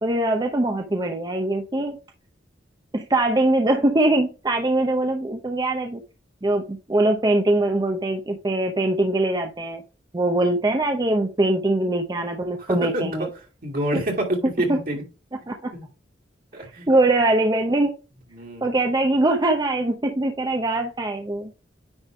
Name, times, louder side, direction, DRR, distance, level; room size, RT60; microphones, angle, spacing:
voice 1, 0.0-2.0 2.9-6.0 6.4-9.8 10.1-13.3 14.7-14.8 15.5-15.7 16.9-17.9 18.6-21.5, right 2 dB, 20° right, 0.7 m, -22 dB
voice 2, 12.6-13.3 13.6-15.0 15.7-15.9 16.5-16.9 18.3-18.7, right 1 dB, 50° right, 2.4 m, -27 dB
9.7 x 3.3 x 4.4 m
head